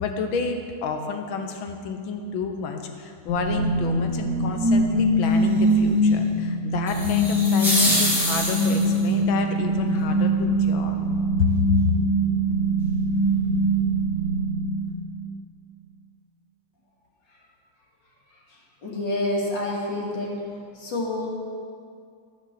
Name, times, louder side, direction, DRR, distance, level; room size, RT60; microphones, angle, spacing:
voice 1, 0.0-11.0 11.4-11.8, left 5 dB, 85° left, 5 dB, 1.7 m, -29 dB
sound 1, 3.3-15.3, right 1 dB, 45° left, 2.4 m, -23 dB
sound 2, 6.9-9.0, equal, ahead, 2.1 m, -25 dB
voice 2, 18.5-20.4 20.7-21.3, left 1 dB, 65° left, -4 dB, 2.8 m, -28 dB
13.5 x 6.7 x 6.7 m, 2.3 s
omnidirectional pair, 2.1 m